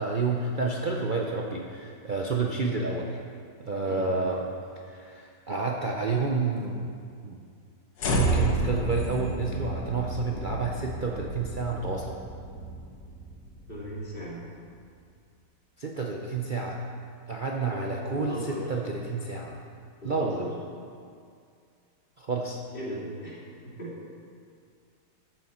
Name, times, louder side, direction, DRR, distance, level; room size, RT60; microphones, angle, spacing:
voice 1, 0.0-3.2 3.6-4.5 4.8-6.9 7.2-7.4 8.1-12.2 15.8-16.8 17.3-19.6 20.0-20.4 22.2-22.6, right 4 dB, 70° right, -1 dB, 0.4 m, -29 dB
sound 1, 8.0-14.3, right 1 dB, 75° left, 1.9 m, -31 dB
voice 2, 13.7-14.4 17.7-17.8 18.1-18.6 20.0-20.5 22.7-23.9, equal, 30° left, -6 dB, 2.5 m, -37 dB
14.0 x 7.6 x 4.3 m, 2.3 s
omnidirectional pair, 2.0 m